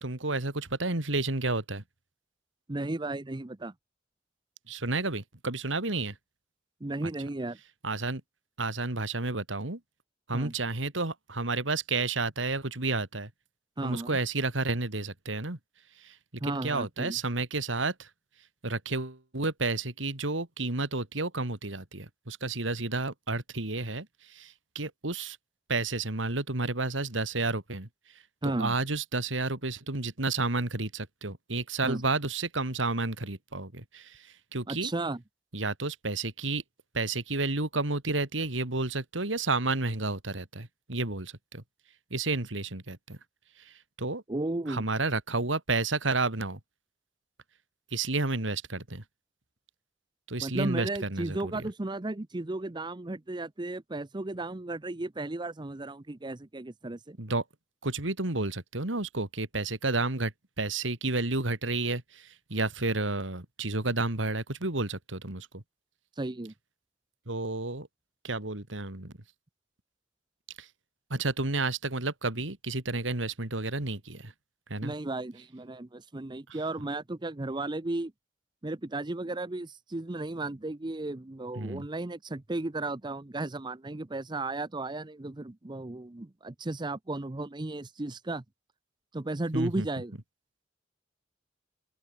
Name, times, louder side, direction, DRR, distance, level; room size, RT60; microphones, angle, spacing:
voice 1, 0.0-1.8 4.7-6.2 7.0-7.1 7.8-8.2 8.6-9.8 10.3-13.3 13.8-15.6 16.0-18.1 18.6-25.4 25.7-27.9 28.4-34.9 35.5-36.6 36.9-41.6 42.1-43.2 43.6-44.2 44.7-46.6 47.9-49.0 50.3-51.5 57.2-57.4 57.8-65.6 67.3-67.9 68.2-69.1 70.6-70.7 71.1-74.3 74.7-74.9 81.6-81.9 89.5-89.9, right 3 dB, 85° right, 2.9 m, -31 dB
voice 2, 2.7-3.7 6.8-7.6 10.3-10.5 13.8-14.2 16.4-17.2 28.4-28.7 31.8-32.0 34.7-35.2 44.3-44.8 50.4-57.2 66.2-66.5 74.8-78.1 78.6-88.4 89.1-90.2, right 2 dB, 25° right, 0.7 m, -34 dB
open air
head